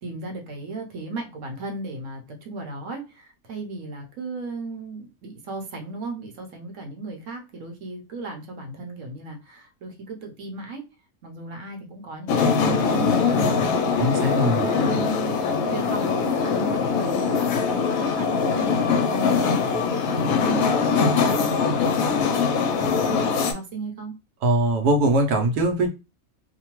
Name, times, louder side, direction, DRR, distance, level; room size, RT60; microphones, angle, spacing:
voice 1, 0.0-10.8 11.2-13.8 14.6-24.1, right 3 dB, 65° right, 3 dB, 1.0 m, -36 dB
sound 1, 12.3-23.5, left 5 dB, 75° left, 1.0 m, -22 dB
voice 2, 14.0-14.6 24.4-25.9, right 1 dB, 85° right, 4 dB, 1.2 m, -21 dB
2.8 x 2.1 x 2.9 m, 0.28 s
omnidirectional pair, 1.6 m